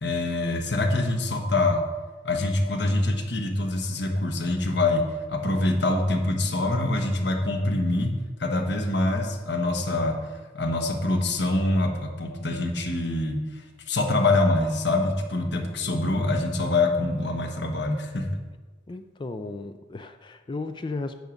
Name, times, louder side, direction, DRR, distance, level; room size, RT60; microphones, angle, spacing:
voice 1, 0.0-1.8 2.2-18.3, left 2 dB, 65° left, 4 dB, 1.2 m, -25 dB
voice 2, 15.6-16.0 18.9-21.1, left 3 dB, 25° left, 9 dB, 0.3 m, -35 dB
9.2 x 6.0 x 5.2 m, 1.3 s
head